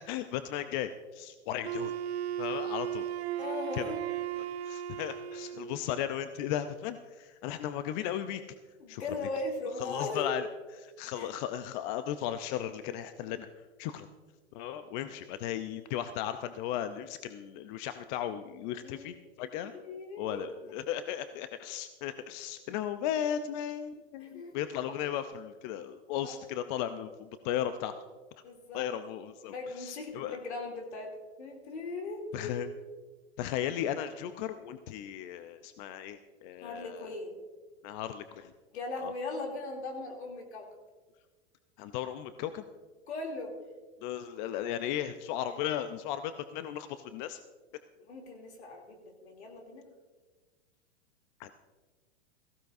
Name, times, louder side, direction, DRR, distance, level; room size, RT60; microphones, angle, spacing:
voice 1, 0.1-1.9 2.4-3.1 3.7-3.9 4.7-8.4 8.9-9.0 9.8-10.5 10.8-13.5 13.8-14.1 14.5-19.7 20.2-27.9 28.7-30.4 32.3-32.7 33.4-37.1 37.8-38.5 39.0-39.1 41.8-42.6 44.0-47.4 51.4-51.5, left 10 dB, 45° left, 10 dB, 0.7 m, -36 dB
Wind instrument woodwind instrument, 1.6-5.8, right 11 dB, 70° right, 0.9 m, -36 dB
voice 2, 3.4-4.1 5.5-5.7 8.8-10.3 11.1-11.3 18.8-19.1 19.6-20.5 24.2-24.6 26.2-26.4 28.4-28.9 29.5-32.8 36.6-37.4 38.7-40.7 43.1-43.5 48.0-49.9, left 3 dB, 75° left, 1 dB, 3.0 m, -39 dB
17.0 x 15.5 x 2.7 m, 1.3 s
hypercardioid pair, 105°, 33 cm